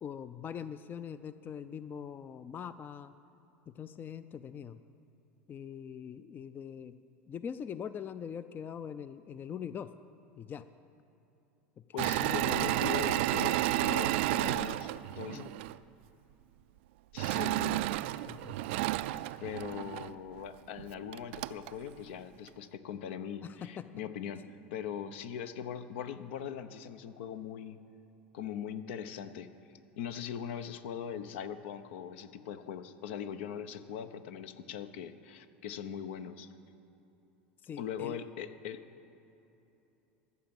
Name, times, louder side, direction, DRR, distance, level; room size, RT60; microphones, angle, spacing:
voice 1, 0.0-3.1 3.7-4.8 5.5-6.9 7.3-9.9 10.4-10.7 11.9-12.8 15.3-15.5 18.3-18.6 23.4-23.8 37.6-38.2, left 8 dB, 30° left, 13 dB, 0.4 m, -42 dB
voice 2, 11.9-15.4 17.1-17.9 19.4-24.4 24.7-27.8 28.3-36.5 37.8-38.9, left 8 dB, 70° left, 11 dB, 0.7 m, -41 dB
Engine / Mechanisms, 12.0-15.8 17.2-20.1 20.8-20.9 21.1-21.7, right 16 dB, 70° right, 0.3 m, -31 dB
14.0 x 7.1 x 7.7 m, 3.0 s
hypercardioid pair, 90°, 6 cm